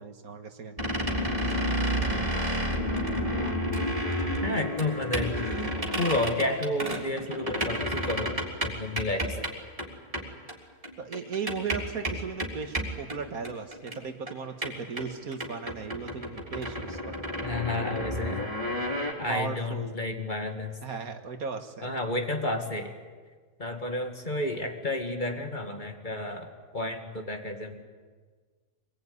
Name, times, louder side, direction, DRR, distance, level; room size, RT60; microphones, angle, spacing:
voice 1, 0.0-1.7 11.0-17.2 17.9-18.0 19.3-19.9 20.8-21.9, right 5 dB, 70° right, 7 dB, 1.9 m, -37 dB
sound 1, 0.8-9.5 9.8-9.9 10.1-10.2 10.5-10.6 10.8-14.0 14.3-14.4 14.6-19.1, equal, 20° right, 3.7 m, -30 dB
voice 2, 4.4-5.4 6.0-9.5 17.4-18.4 19.2-20.7 21.8-22.9 23.6-27.8, left 2 dB, 30° left, 4 dB, 2.3 m, -31 dB
25.5 x 20.5 x 9.7 m, 1.5 s
omnidirectional pair, 1.6 m